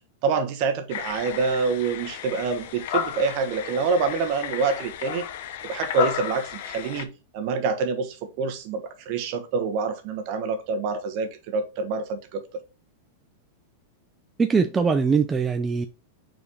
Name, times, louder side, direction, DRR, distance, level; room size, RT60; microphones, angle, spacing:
voice 1, 0.2-5.2 5.6-12.4, right 4 dB, 45° right, 1.2 m, -26 dB
sound 1, 0.9-7.0, left 10 dB, 60° left, 0.8 m, -33 dB
voice 2, 14.4-15.9, right 5 dB, 15° right, 0.4 m, -22 dB
5.6 x 4.4 x 3.9 m
supercardioid pair, 155°, 0 cm